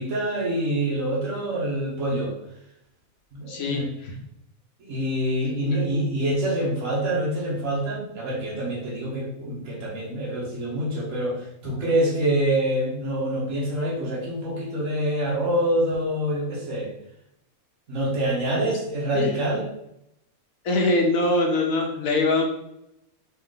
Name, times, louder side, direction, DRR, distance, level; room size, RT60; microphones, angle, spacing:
voice 1, 0.0-2.3 3.3-3.9 4.8-16.9 17.9-19.6, right 1 dB, 70° right, -5 dB, 1.7 m, -26 dB
voice 2, 3.5-4.1 5.7-5.8 19.1-19.3 20.6-22.5, left 2 dB, 75° left, 1 dB, 1.2 m, -23 dB
4.3 x 3.1 x 3.8 m, 0.80 s
omnidirectional pair, 1.4 m